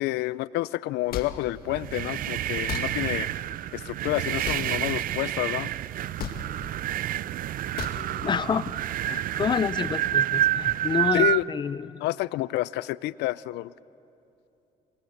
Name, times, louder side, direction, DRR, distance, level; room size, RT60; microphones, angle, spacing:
voice 1, 0.0-3.3 3.7-5.7 11.1-11.4 12.0-13.7, left 18 dB, 80° left, 19 dB, 0.4 m, -29 dB
sound 1, 1.1-1.3 2.7-2.9 4.4-4.7 6.2-6.4 7.8-8.0, left 10 dB, 65° left, 1.9 m, -33 dB
sound 2, 1.6-11.4, right 12 dB, 55° right, 0.5 m, -28 dB
voice 2, 8.0-8.7 9.0-12.1, left 6 dB, 25° left, 16 dB, 0.5 m, -29 dB
22.5 x 21.0 x 7.9 m, 2.7 s
cardioid pair, 110°, 17 cm